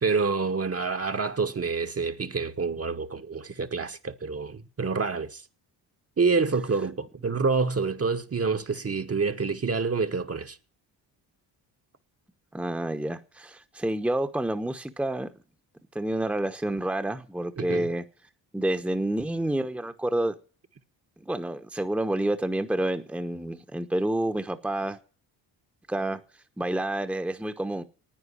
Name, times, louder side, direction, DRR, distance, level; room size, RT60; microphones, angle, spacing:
voice 1, 0.0-5.4 6.2-10.6 17.6-17.9, right 4 dB, 30° right, 1.2 m, -27 dB
voice 2, 12.5-15.3 15.9-18.0 18.5-20.3 21.3-25.0 25.9-26.2 26.6-27.8, right 1 dB, 5° right, 1.0 m, -29 dB
10.5 x 9.4 x 9.8 m
cardioid pair, 65°, 46 cm